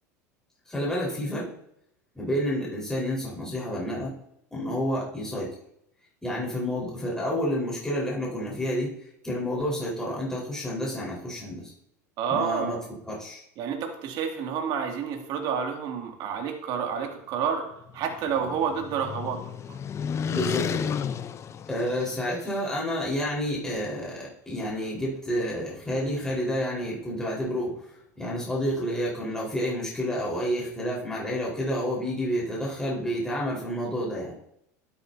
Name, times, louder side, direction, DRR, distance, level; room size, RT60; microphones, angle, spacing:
voice 1, 0.7-1.5 2.1-4.2 4.5-5.5 6.2-8.9 9.2-11.7 12.3-12.8 13.1-13.4 20.3-21.0 21.7-27.7 28.2-34.3, equal, 5° left, -5 dB, 4.4 m, -29 dB
voice 2, 12.2-12.9 13.6-17.6 17.9-19.4 19.7-19.8, right 7 dB, 55° right, 2 dB, 2.4 m, -29 dB
sound 1, 17.7-22.5, left 7 dB, 35° left, 0.6 m, -33 dB
12.5 x 9.7 x 2.8 m, 0.75 s
hypercardioid pair, 90°, 9 cm